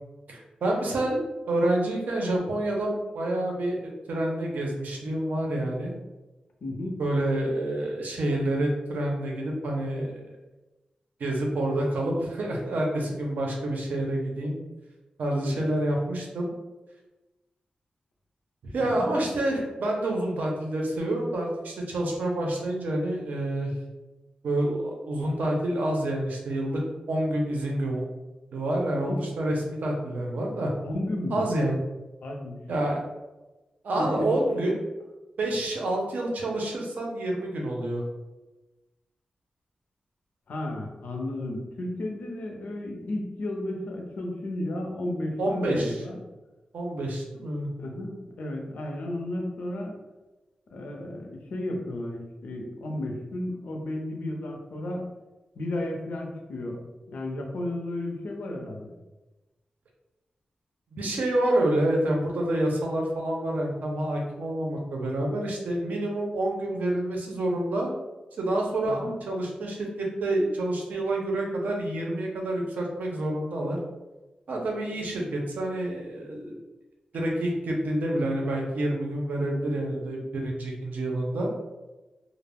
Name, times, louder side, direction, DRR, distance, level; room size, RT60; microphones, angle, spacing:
voice 1, 0.3-1.2 1.5-5.9 7.0-10.2 11.2-14.6 15.2-16.5 18.6-23.7 24.4-26.8 27.1-28.0 28.5-30.7 31.3-31.8 32.7-33.0 33.8-34.7 35.4-38.0 45.4-46.0 46.7-47.7 60.9-67.9 68.4-73.8 74.5-76.5 77.1-81.5, right 1 dB, 90° right, 0 dB, 0.6 m, -28 dB
voice 2, 6.6-7.0 15.4-15.6 18.8-19.2 29.0-29.2 30.8-31.4 32.2-32.6 34.0-34.4 40.5-46.2 47.8-49.9 50.7-55.1 55.6-56.8 57.1-58.9 68.8-69.1, left 1 dB, 80° left, 1 dB, 0.5 m, -33 dB
2.3 x 2.0 x 3.4 m, 1.1 s
wide cardioid pair, 125°, 3 cm